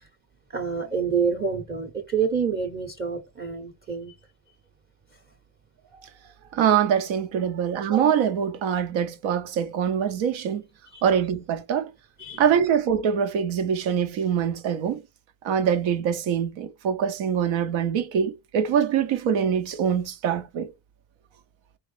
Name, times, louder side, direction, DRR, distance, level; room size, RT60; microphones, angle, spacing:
voice 1, 0.5-4.1 10.9-11.0 12.2-12.4, right 6 dB, 20° right, 0.9 m, -27 dB
voice 2, 6.5-10.6 11.0-11.9 12.4-15.0 15.4-20.7, right 8 dB, 65° right, 0.8 m, -24 dB
4.2 x 3.1 x 3.2 m
cardioid pair, 110°, 50 cm